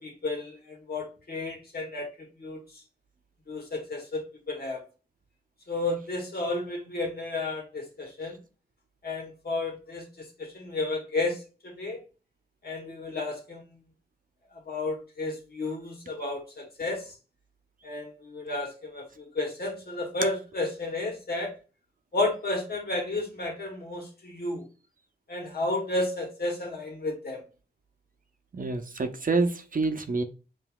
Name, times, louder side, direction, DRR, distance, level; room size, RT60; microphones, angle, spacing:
voice 1, 0.0-2.6 3.5-4.8 5.7-8.4 9.0-10.0 10.4-12.0 12.6-13.8 14.7-17.1 17.8-21.5 22.1-24.6 25.3-27.4, left 2 dB, 65° left, 1.4 m, -32 dB
voice 2, 28.5-30.2, right 3 dB, 50° right, 0.7 m, -27 dB
5.7 x 2.6 x 2.3 m
cardioid pair, 45°, 17 cm